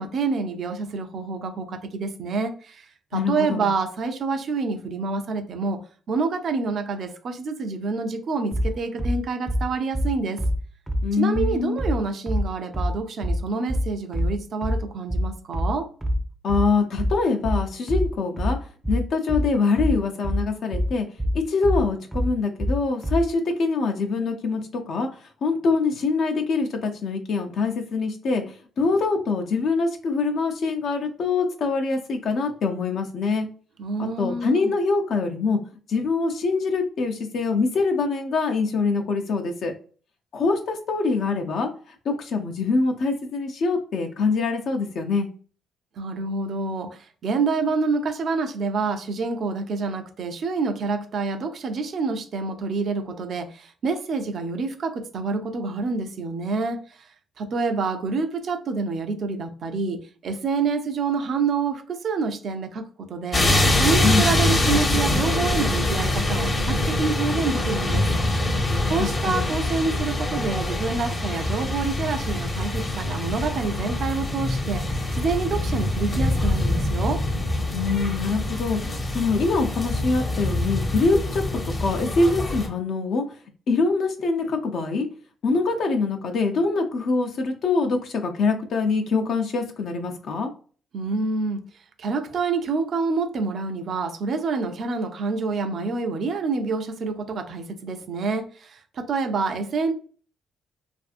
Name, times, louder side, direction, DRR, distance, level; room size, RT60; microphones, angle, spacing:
voice 1, 0.0-5.8 6.1-10.4 11.1-15.9 33.8-34.7 46.0-57.1 57.4-68.1 68.8-77.2 90.9-91.6 92.0-99.9, right 4 dB, 60° right, 0.5 m, -27 dB
voice 2, 3.1-3.7 11.0-11.8 16.4-18.6 18.9-21.1 21.3-25.1 25.4-33.5 34.0-35.6 35.9-39.7 40.3-41.7 42.0-45.3 64.0-64.3 68.7-69.5 77.7-83.2 83.7-85.1 85.4-90.5, left 4 dB, 65° left, 0.6 m, -24 dB
sound 1, 8.5-23.3, equal, 10° right, 0.5 m, -25 dB
sound 2, 63.3-82.7, left 1 dB, 30° left, 0.7 m, -24 dB
2.5 x 2.5 x 2.4 m
cardioid pair, 90°, 0 cm